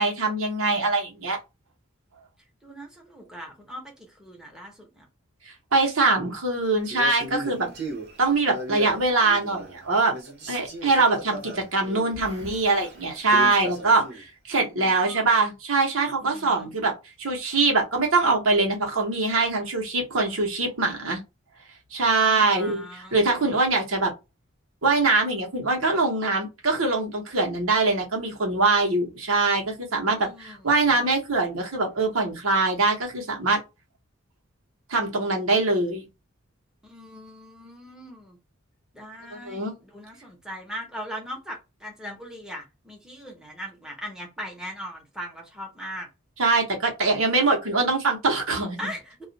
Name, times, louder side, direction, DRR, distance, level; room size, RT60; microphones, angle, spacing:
voice 1, 0.0-1.4 5.7-7.7 8.2-10.1 10.5-21.2 21.9-24.1 24.8-33.6 34.9-36.1 39.3-39.7 46.4-48.8, right 3 dB, 90° right, 1.0 m, -23 dB
voice 2, 2.6-5.1 14.7-15.3 16.2-16.7 22.2-23.2 30.1-31.1 36.8-38.4 38.9-46.1 48.8-49.2, equal, 5° right, 0.9 m, -40 dB
Male speech man speaking, 6.8-9.8 10.1-14.2, right 1 dB, 55° right, 0.9 m, -37 dB
2.4 x 2.3 x 3.9 m
head